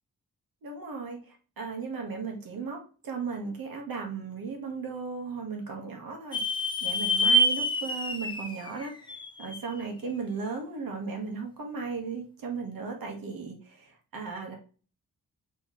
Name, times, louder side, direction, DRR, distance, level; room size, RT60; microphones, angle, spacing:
voice 1, 0.6-6.4 6.8-14.5, right 5 dB, 85° right, 2 dB, 1.4 m, -36 dB
sound 1, 6.3-9.8, equal, 15° left, 0.5 m, -27 dB
4.2 x 3.4 x 3.1 m, 0.37 s
wide cardioid pair, 150°, 34 cm